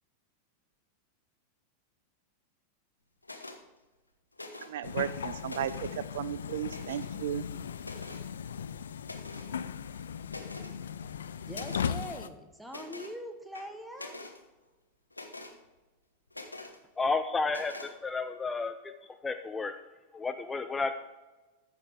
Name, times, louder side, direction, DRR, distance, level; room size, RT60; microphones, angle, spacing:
sound 1, 3.2-3.6 4.3-4.9 5.3-6.0 6.7-7.2 7.8-8.3 9.0-9.5 9.9-10.0 10.3-10.7 11.5-11.9 12.7-13.2 13.5-14.4 15.1-15.6 16.3-16.8 17.5-17.9, left 2 dB, 85° left, 1.0 m, -45 dB
voice 1, 4.7-5.9 6.1-7.4, right 11 dB, 55° right, 0.3 m, -34 dB
sound 2, 4.8-12.3, left 7 dB, 65° left, 0.5 m, -38 dB
voice 2, 11.5-14.2, equal, 5° right, 1.3 m, -43 dB
voice 3, 17.0-18.7 19.2-19.7 20.1-20.9, left 4 dB, 15° left, 0.5 m, -31 dB
14.0 x 5.5 x 4.8 m
figure-of-eight pair, 90°, 0 cm